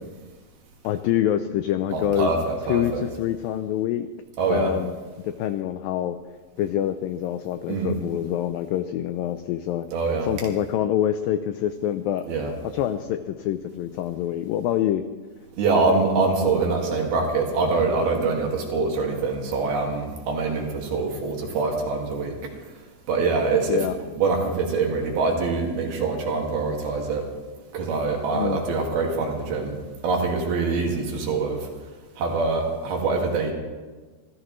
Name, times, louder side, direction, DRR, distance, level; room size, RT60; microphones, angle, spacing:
voice 1, 0.8-2.3 2.7-4.1 4.5-5.0 5.2-6.2 6.6-9.9 10.2-12.3 12.7-15.0 23.7-24.0 28.3-28.6, left 11 dB, 85° left, 10 dB, 2.0 m, -26 dB
voice 2, 1.9-3.1 4.4-4.7 7.7-8.0 9.9-10.3 12.3-12.5 15.6-22.3 23.1-23.9 24.2-27.3 27.7-31.7 32.2-33.5, right 4 dB, 70° right, 0 dB, 3.9 m, -24 dB
26.0 x 15.0 x 3.2 m, 1.4 s
omnidirectional pair, 4.7 m